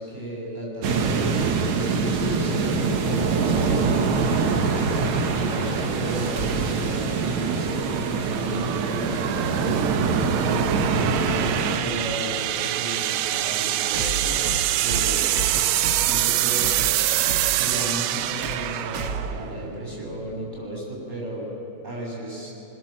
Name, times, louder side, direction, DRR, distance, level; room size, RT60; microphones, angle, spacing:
voice 1, 0.0-4.8 5.3-8.0 8.4-9.2 9.5-10.1 10.8-14.4 14.8-15.6 16.0-16.7 17.5-21.5 21.8-22.5, right 1 dB, 15° right, -2 dB, 7.2 m, -34 dB
sound 1, 0.8-11.8, right 4 dB, 65° right, 2.7 m, -24 dB
sound 2, 1.9-20.6, right 14 dB, 90° right, 2.3 m, -27 dB
sound 3, 6.4-6.9 9.0-9.1 10.2-10.3 13.9-16.2 16.6-17.5 18.4-18.7 18.9-19.4, right 3 dB, 45° right, 1.9 m, -32 dB
25.5 x 22.0 x 7.5 m, 2.9 s
omnidirectional pair, 3.6 m